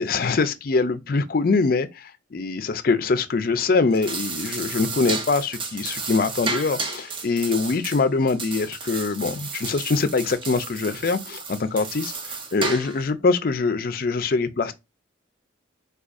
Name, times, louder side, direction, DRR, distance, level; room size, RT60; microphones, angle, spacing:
voice 1, 0.0-14.7, left 4 dB, 50° left, 0.4 m, -23 dB
sound 1, 3.8-13.1, right 4 dB, 25° right, 0.4 m, -33 dB
4.6 x 2.3 x 2.4 m
head